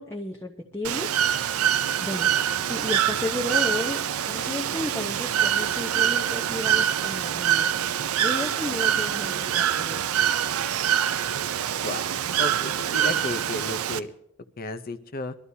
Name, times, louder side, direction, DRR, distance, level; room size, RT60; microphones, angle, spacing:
voice 1, 0.0-1.5 2.0-2.3 2.7-4.0 4.3-7.7 8.2-10.2, left 2 dB, 10° left, -1 dB, 0.9 m, -33 dB
Bird / Water, 0.8-14.0, right 9 dB, 75° right, 0.5 m, -25 dB
voice 2, 12.4-14.1 14.6-15.4, left 2 dB, 45° left, 10 dB, 0.7 m, -33 dB
23.0 x 13.0 x 2.8 m, 0.76 s
head